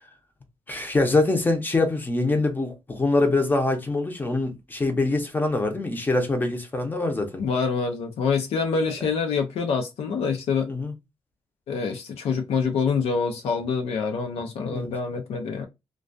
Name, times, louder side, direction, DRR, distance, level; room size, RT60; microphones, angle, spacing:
voice 1, 0.7-7.4 10.7-10.9 14.7-14.9, left 2 dB, 20° left, 0.6 m, -24 dB
voice 2, 7.4-10.7 11.7-15.7, left 5 dB, 80° left, 0.5 m, -26 dB
2.2 x 2.2 x 2.5 m
wide cardioid pair, 135°, 10 cm